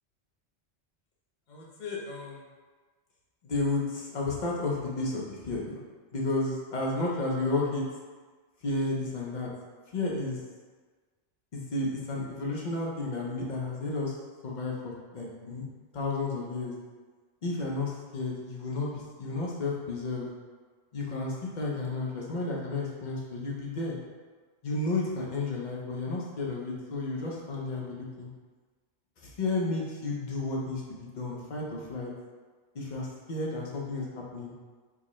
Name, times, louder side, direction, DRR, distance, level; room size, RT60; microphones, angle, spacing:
voice 1, 1.5-2.4 3.4-5.8 6.1-7.8 8.6-9.5 9.9-10.4 11.5-14.2 14.4-15.7 15.9-16.7 17.4-20.3 20.9-24.0 24.6-28.3 29.2-32.1 32.7-34.5, left 2 dB, 45° left, -3 dB, 0.7 m, -32 dB
4.6 x 2.2 x 3.0 m, 1.4 s
omnidirectional pair, 1.2 m